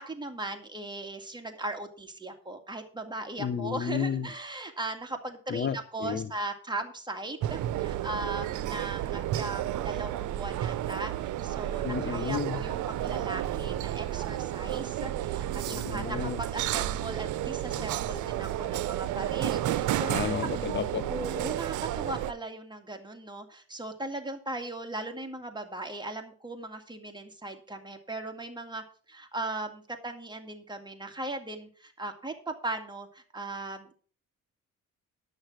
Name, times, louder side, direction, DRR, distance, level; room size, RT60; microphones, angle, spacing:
voice 1, 0.0-20.3 21.1-33.9, right 2 dB, 15° right, 4 dB, 2.2 m, -38 dB
voice 2, 3.4-4.3 5.5-6.3 11.8-12.6 15.7-16.4 20.1-21.1, left 7 dB, 40° left, 13 dB, 0.7 m, -32 dB
sound 1, 7.4-22.3, right 13 dB, 75° right, 0.7 m, -31 dB
11.0 x 6.5 x 5.9 m, 0.43 s
cardioid pair, 90°, 30 cm